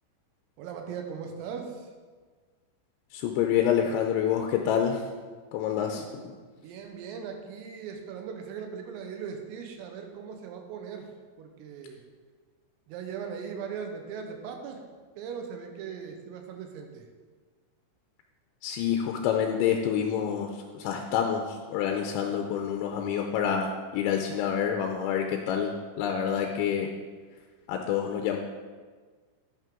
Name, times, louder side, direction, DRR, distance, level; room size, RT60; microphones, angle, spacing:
voice 1, 0.6-1.9 6.6-11.1 11.4-12.0 12.9-14.8 15.2-17.1, right 6 dB, 90° right, 4 dB, 3.7 m, -39 dB
voice 2, 3.1-5.0 5.5-6.3 18.6-26.9 27.7-28.4, left 8 dB, 85° left, 3 dB, 2.7 m, -27 dB
10.5 x 9.3 x 3.8 m, 1.5 s
omnidirectional pair, 5.8 m